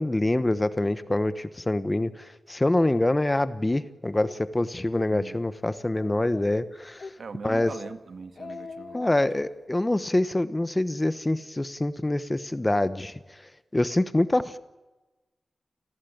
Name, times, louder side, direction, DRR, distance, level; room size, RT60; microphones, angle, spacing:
voice 1, 0.0-7.1 7.4-7.7 8.9-13.2 13.7-14.6, left 1 dB, 15° left, 13 dB, 1.1 m, -25 dB
Speech, 4.2-4.4 4.8-5.1 5.5-5.6 6.0-6.6 7.0-7.2 7.5-7.9 8.2-9.3, left 4 dB, 50° left, 2.3 m, -42 dB
voice 2, 7.2-9.0, right 5 dB, 65° right, 9 dB, 2.0 m, -41 dB
29.5 x 20.0 x 8.8 m, 1.1 s
wide cardioid pair, 155°, 0 cm